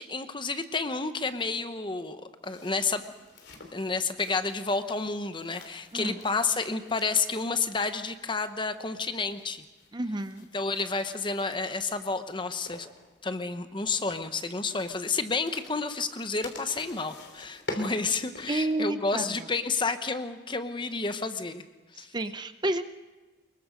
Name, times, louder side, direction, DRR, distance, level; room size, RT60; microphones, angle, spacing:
voice 1, 0.0-3.0 3.7-9.6 10.5-12.9 13.2-21.6 22.0-22.1, left 4 dB, 25° left, 10 dB, 1.0 m, -30 dB
sound 1, 2.4-18.7, left 2 dB, 65° left, 3.3 m, -47 dB
voice 2, 9.9-10.5 18.5-19.3 22.1-22.8, right 2 dB, 25° right, 10 dB, 0.6 m, -30 dB
24.5 x 22.0 x 5.2 m, 1.3 s
head